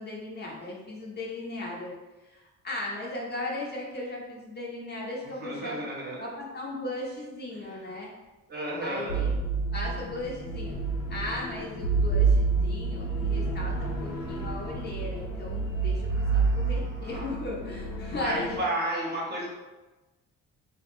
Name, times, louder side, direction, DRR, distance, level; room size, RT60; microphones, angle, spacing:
voice 1, 0.0-1.9 2.2-5.8 6.2-8.1 8.8-9.3 9.7-10.7 11.1-18.7, left 2 dB, 35° left, -4 dB, 0.7 m, -37 dB
voice 2, 5.2-6.3 7.5-7.9 8.5-9.2 16.1-17.3 18.2-19.5, right 1 dB, 35° right, -4 dB, 0.9 m, -33 dB
sound 1, 8.8-18.6, right 4 dB, 90° left, 0.5 m, -28 dB
2.4 x 2.1 x 3.0 m, 1.1 s
cardioid pair, 90°, 30 cm